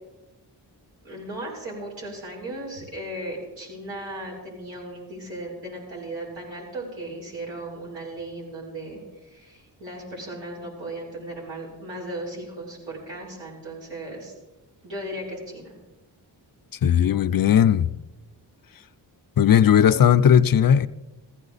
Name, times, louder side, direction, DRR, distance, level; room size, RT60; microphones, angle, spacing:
voice 1, 1.0-14.3 14.8-15.7, right 1 dB, 90° right, 6.3 m, -36 dB
voice 2, 16.8-17.9 19.4-20.9, left 9 dB, 50° left, 0.6 m, -17 dB
16.0 x 15.0 x 4.1 m
cardioid pair, 70°, 44 cm